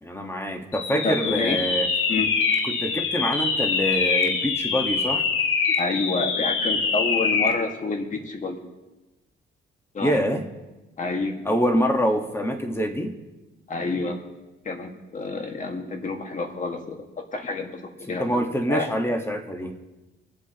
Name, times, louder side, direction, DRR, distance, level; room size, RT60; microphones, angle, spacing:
voice 1, 0.0-1.9 2.6-5.2 10.0-10.5 11.4-13.2 18.1-19.7, equal, 10° left, 4 dB, 1.5 m, -25 dB
sound 1, 0.7-7.7, left 5 dB, 90° left, 1.2 m, -24 dB
voice 2, 1.0-1.6 2.1-2.3 5.8-8.6 9.9-10.2 11.0-11.4 13.7-14.2 14.7-18.9, left 3 dB, 40° left, 3 dB, 1.9 m, -29 dB
23.5 x 8.3 x 3.0 m, 1.1 s
cardioid pair, 90°, 20 cm